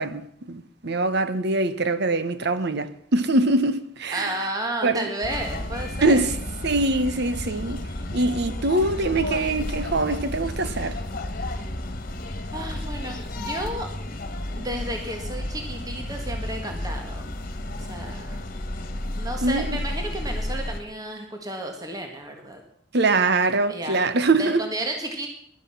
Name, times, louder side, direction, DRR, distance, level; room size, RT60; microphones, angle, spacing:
voice 1, 0.0-4.4 4.8-5.1 6.0-6.3 6.6-7.8 8.1-11.0 19.4-19.8 22.9-24.6, right 2 dB, 60° right, 1.1 m, -23 dB
voice 2, 4.1-6.3 12.5-13.9 14.5-17.3 17.8-18.4 19.1-22.6 23.7-25.3, right 1 dB, 20° right, 1.7 m, -32 dB
sound 1, 5.2-20.8, left 1 dB, 50° left, 1.7 m, -32 dB
17.0 x 12.0 x 5.8 m
head